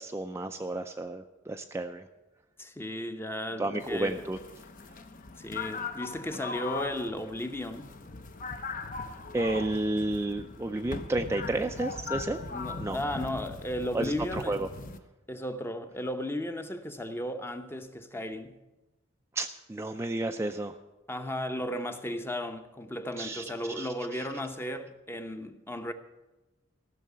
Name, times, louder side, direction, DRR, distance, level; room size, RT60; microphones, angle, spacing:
voice 1, 0.0-2.1 3.6-4.4 9.3-12.4 12.8-13.0 13.9-14.7 19.3-20.7 23.2-23.4 23.8-24.3, right 2 dB, 15° right, 0.4 m, -31 dB
voice 2, 2.6-4.2 5.4-8.0 12.5-14.6 15.3-18.6 21.1-25.9, left 1 dB, 10° left, 0.8 m, -35 dB
sound 1, 3.8-15.0, left 4 dB, 45° left, 0.8 m, -40 dB
15.0 x 6.5 x 9.3 m
head